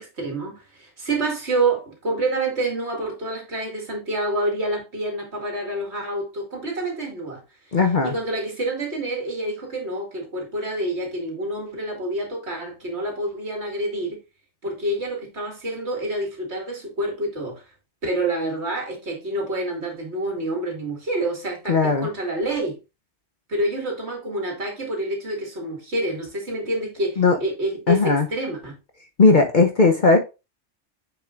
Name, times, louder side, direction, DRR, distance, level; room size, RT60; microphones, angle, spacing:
voice 1, 0.0-7.4 8.0-14.2 14.6-17.6 18.0-22.8 23.5-28.8, right 2 dB, 60° right, 2.4 m, -27 dB
voice 2, 7.7-8.1 21.7-22.1 27.2-27.4 27.9-28.3 29.2-30.2, left 3 dB, 45° left, 0.9 m, -17 dB
7.1 x 6.5 x 2.5 m
omnidirectional pair, 1.3 m